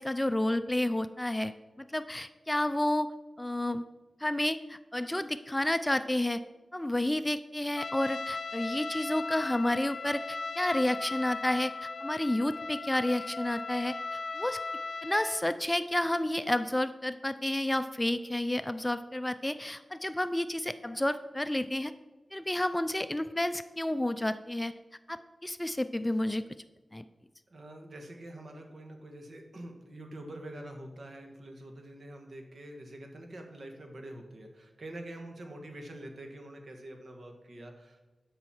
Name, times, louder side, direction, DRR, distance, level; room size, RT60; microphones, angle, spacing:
voice 1, 0.0-1.5 1.8-3.1 3.4-3.8 4.2-6.4 6.7-14.0 14.3-14.6 15.0-21.9 22.3-24.7 25.1-26.4 26.9-27.0, left 1 dB, 15° left, 12 dB, 0.4 m, -30 dB
Trumpet, 7.8-15.4, left 3 dB, 60° left, 0.7 m, -37 dB
voice 2, 27.5-38.0, right 1 dB, 65° right, 3 dB, 1.7 m, -45 dB
12.5 x 5.6 x 4.4 m, 1.2 s
cardioid pair, 60°, 0 cm